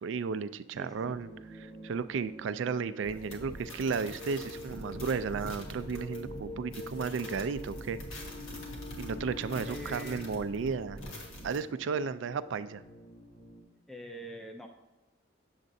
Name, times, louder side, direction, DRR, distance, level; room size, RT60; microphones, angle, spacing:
voice 1, 0.0-1.3 1.6-8.0 9.0-11.0 11.4-12.8, right 5 dB, 60° right, 14 dB, 0.3 m, -34 dB
voice 2, 0.7-1.1 9.6-10.3 10.6-10.8 13.9-14.7, right 1 dB, ahead, 2 dB, 0.4 m, -45 dB
sound 1, 0.9-13.6, equal, 25° left, 1.0 m, -47 dB
sound 2, 3.0-11.6, equal, 85° left, 1.5 m, -45 dB
Bowed string instrument, 8.1-11.1, left 6 dB, 50° left, 1.0 m, -47 dB
7.7 x 7.2 x 2.7 m, 1.1 s
head